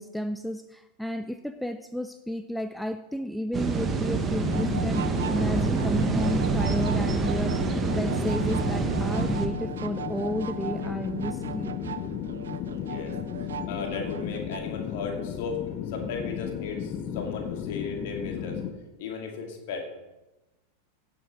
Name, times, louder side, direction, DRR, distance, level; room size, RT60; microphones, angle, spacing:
voice 1, 0.0-7.7 8.0-11.9, equal, ahead, 9 dB, 0.4 m, -32 dB
sound 1, 3.5-9.5, right 4 dB, 20° right, 1.1 m, -27 dB
sound 2, 4.3-18.7, left 9 dB, 35° left, 0.9 m, -34 dB
sound 3, 4.4-14.6, right 8 dB, 65° right, 0.5 m, -39 dB
voice 2, 12.7-13.2 13.7-18.6 19.0-19.8, left 5 dB, 50° left, 2 dB, 2.3 m, -35 dB
16.5 x 6.6 x 3.7 m, 1.1 s
figure-of-eight pair, 90°, 0 cm